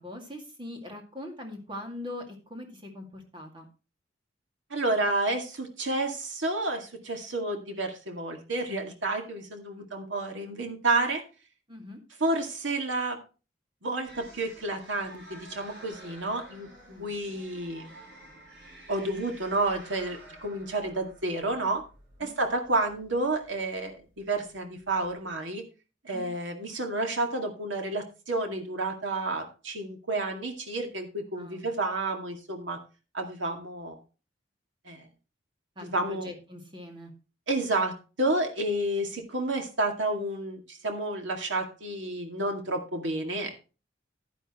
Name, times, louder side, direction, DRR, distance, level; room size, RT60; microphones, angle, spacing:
voice 1, 0.0-3.7 9.8-9.9 11.7-12.0 16.9-17.1 22.2-22.3 26.1-26.3 31.4-31.6 35.8-37.1, left 1 dB, 25° right, 3 dB, 2.2 m, -42 dB
voice 2, 4.7-11.2 12.2-13.2 13.8-16.7 17.0-17.9 18.9-21.8 22.2-25.6 26.0-32.8 33.1-34.0 34.9-35.1 35.8-36.3 37.5-43.7, right 2 dB, 90° right, 4 dB, 2.2 m, -30 dB
sound 1, 14.0-25.3, right 1 dB, 70° right, 5.8 m, -51 dB
11.0 x 10.5 x 3.0 m, 0.32 s
head